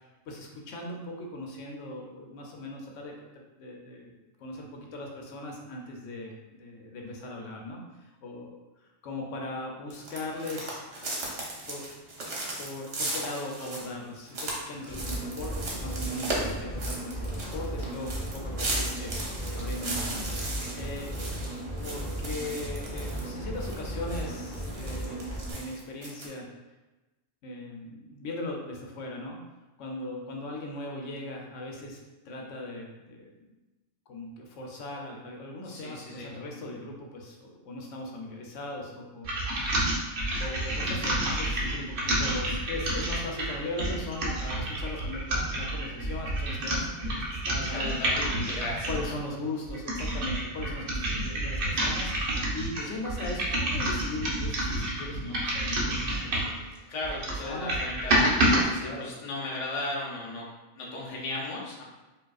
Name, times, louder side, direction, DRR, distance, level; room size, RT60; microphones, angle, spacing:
voice 1, 0.3-3.1 3.6-4.1 4.4-8.5 9.0-10.8 11.2-11.3 11.7-11.9 12.6-21.1 21.8-26.5 27.4-29.4 29.8-32.0 32.3-33.3 34.1-39.4 39.7-48.5 48.9-56.6 57.4-57.9 58.8-59.1, left 2 dB, 80° left, 0 dB, 1.0 m, -39 dB
sound 1, 9.9-23.3 23.6-26.3, right 2 dB, 65° right, 1.2 m, -37 dB
sound 2, 14.9-25.5, right 1 dB, 10° left, 1.0 m, -35 dB
voice 2, 35.6-36.3 47.7-49.2 56.9-60.4 60.7-61.8, left 2 dB, 35° left, -3 dB, 0.6 m, -36 dB
sound 3, 39.2-49.1 49.6-56.6 57.0-58.6, right 1 dB, 50° right, 0.9 m, -29 dB
4.9 x 2.6 x 2.3 m, 1.1 s
omnidirectional pair, 1.3 m